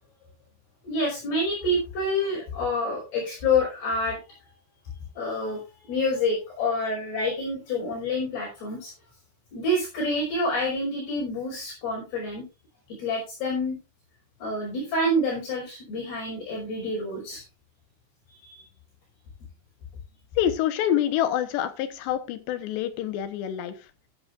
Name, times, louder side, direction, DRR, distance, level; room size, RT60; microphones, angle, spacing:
voice 1, 0.8-4.2 5.2-5.6 5.9-8.9 9.5-12.4 12.9-13.8 14.4-17.4 18.4-18.6, left 1 dB, 60° left, -2 dB, 7.3 m, -27 dB
voice 2, 20.4-23.7, left 11 dB, 75° left, 11 dB, 3.2 m, -26 dB
14.0 x 12.5 x 2.5 m, 0.27 s
omnidirectional pair, 5.3 m